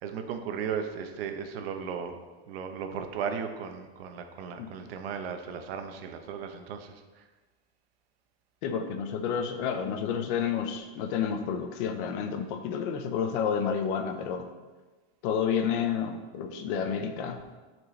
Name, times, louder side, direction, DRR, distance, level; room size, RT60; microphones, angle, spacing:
voice 1, 0.0-2.2 2.5-7.2, right 7 dB, 75° right, 6 dB, 0.9 m, -36 dB
voice 2, 8.6-14.5 15.2-17.4, left 7 dB, 60° left, 7 dB, 0.8 m, -30 dB
10.5 x 4.5 x 3.2 m, 1.3 s
supercardioid pair, 155°, 30 cm